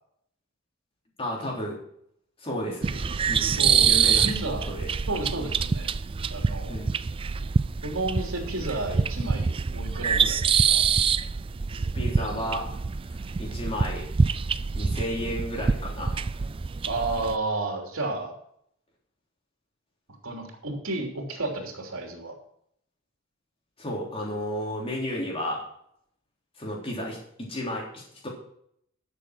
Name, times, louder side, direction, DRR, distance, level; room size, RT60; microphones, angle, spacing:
voice 1, 1.2-1.8 2.4-4.9 6.7-6.9 11.9-12.7 13.4-14.1 14.8-16.1 23.8-25.6 26.6-28.3, equal, 25° left, -2 dB, 3.5 m, -33 dB
sound 1, 2.8-17.4, right 6 dB, 25° right, 0.3 m, -26 dB
voice 2, 3.6-3.9 4.2-4.7 5.1-5.9 6.3-6.8 7.8-10.8 16.8-18.3 20.2-22.3, right 2 dB, 75° right, 1 dB, 3.1 m, -32 dB
12.5 x 6.8 x 6.1 m, 0.69 s
head